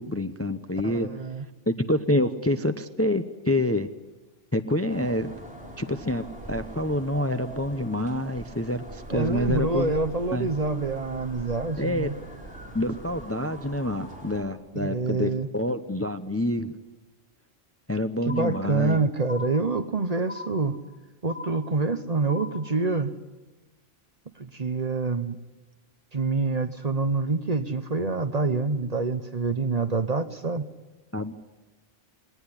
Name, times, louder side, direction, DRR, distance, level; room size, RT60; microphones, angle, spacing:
voice 1, 0.0-1.1 1.7-3.9 4.5-5.3 5.8-9.9 10.3-10.5 11.8-12.1 12.7-16.7 17.9-19.0 31.1-31.3, left 1 dB, 15° left, 9 dB, 0.7 m, -27 dB
voice 2, 0.8-1.4 9.1-12.1 14.7-15.5 18.2-20.7 21.2-23.1 24.4-25.4 26.1-30.7, right 3 dB, 35° right, 10 dB, 0.9 m, -26 dB
sound 1, 4.9-14.4, right 1 dB, 5° right, 4.6 m, -42 dB
sound 2, 18.3-19.0 19.3-20.0 20.3-21.0 21.3-22.0 22.3-23.0, left 4 dB, 85° right, 4.6 m, -40 dB
20.5 x 19.0 x 9.9 m, 1.2 s
omnidirectional pair, 1.2 m